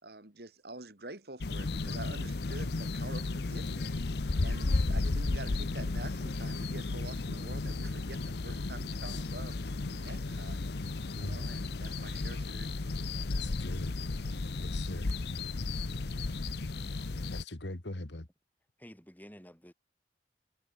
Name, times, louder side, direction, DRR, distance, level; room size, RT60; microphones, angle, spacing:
voice 1, 0.0-4.0 4.4-12.7, right 2 dB, 60° right, 2.8 m, -47 dB
sound 1, 1.4-17.4, left 3 dB, 65° left, 0.8 m, -34 dB
voice 2, 11.2-11.6 13.3-14.0 14.6-15.2 17.3-18.3, left 1 dB, 85° left, 2.1 m, -41 dB
voice 3, 18.8-19.7, equal, 10° left, 7.8 m, -51 dB
head